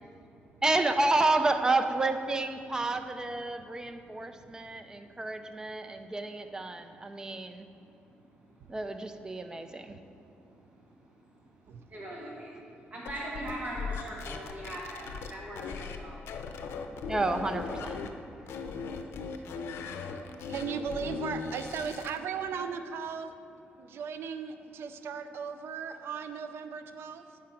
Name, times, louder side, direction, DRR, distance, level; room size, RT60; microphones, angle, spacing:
voice 1, 0.6-7.7 8.7-10.0 17.1-18.0, right 2 dB, 15° right, 8 dB, 0.5 m, -30 dB
voice 2, 3.6-3.9 4.2-4.7 8.6-8.8 11.7-11.8 19.7-23.3 23.8-27.4, right 6 dB, 75° right, 9 dB, 0.4 m, -38 dB
voice 3, 11.9-12.5 12.9-16.2, right 1 dB, 35° right, -4 dB, 1.2 m, -40 dB
sound 1, 13.1-16.0 16.3-18.1 18.5-22.2, left 5 dB, 80° left, 0.6 m, -38 dB
8.7 x 5.1 x 5.7 m, 2.6 s
cardioid pair, 105°, 4 cm